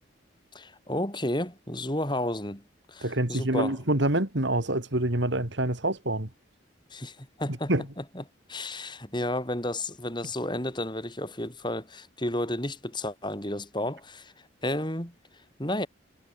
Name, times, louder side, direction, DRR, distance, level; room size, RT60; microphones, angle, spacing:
voice 1, 0.5-3.8 6.9-7.7 8.0-15.1 15.6-15.9, left 1 dB, 25° left, 6.7 m, -32 dB
voice 2, 3.0-6.3 7.7-7.8, right 1 dB, 70° right, 3.3 m, -26 dB
head